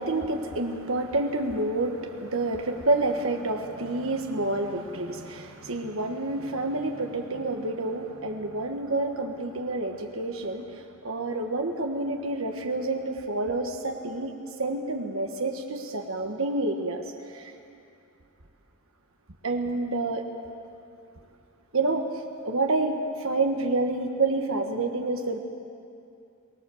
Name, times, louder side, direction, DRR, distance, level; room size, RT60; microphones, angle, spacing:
voice 1, 0.0-14.3 14.6-17.5 19.4-20.3 21.7-22.1 22.4-25.4, right 2 dB, 70° right, 3 dB, 1.5 m, -28 dB
23.0 x 20.0 x 7.2 m, 2.6 s
head